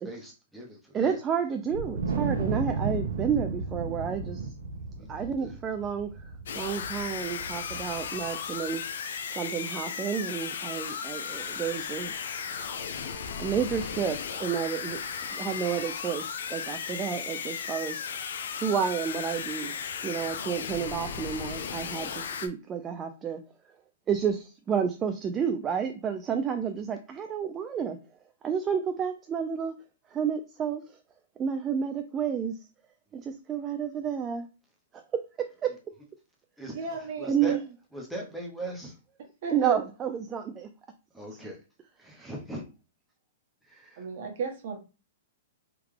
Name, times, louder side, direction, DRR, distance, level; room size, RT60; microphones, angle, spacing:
voice 1, 0.0-1.2 5.0-5.5 36.6-36.7 37.2-37.5 37.9-38.9 41.1-41.6 42.0-42.6, right 1 dB, ahead, 0.7 m, -39 dB
voice 2, 0.9-4.4 5.1-6.1 6.5-8.8 9.3-12.1 13.4-15.0 15.3-16.2 16.5-18.1 18.6-19.8 20.0-23.4 24.1-28.0 28.4-29.7 30.1-30.8 31.4-32.6 33.1-34.5 35.6-35.7 36.7-36.8 37.2-37.8 39.5-40.7 41.3-41.4 42.2-42.3, right 7 dB, 20° right, 0.3 m, -30 dB
Wind, 1.7-8.2, right 4 dB, 80° right, 0.8 m, -33 dB
sound 1, 6.5-22.5, left 6 dB, 75° left, 0.5 m, -35 dB
voice 3, 36.7-37.5 39.4-39.8 44.0-44.8, right 5 dB, 55° right, 1.1 m, -33 dB
3.6 x 2.3 x 3.2 m
hypercardioid pair, 145°, 0 cm